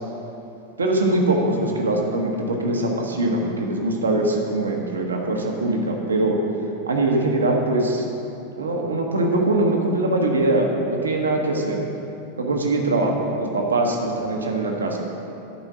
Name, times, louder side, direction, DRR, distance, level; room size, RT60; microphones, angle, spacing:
voice 1, 0.8-6.4 6.9-8.0 8.6-11.8 12.4-15.0, right 2 dB, 75° right, 1 dB, 1.1 m, -22 dB
11.0 x 4.5 x 6.1 m, 2.9 s
figure-of-eight pair, 90°, 0 cm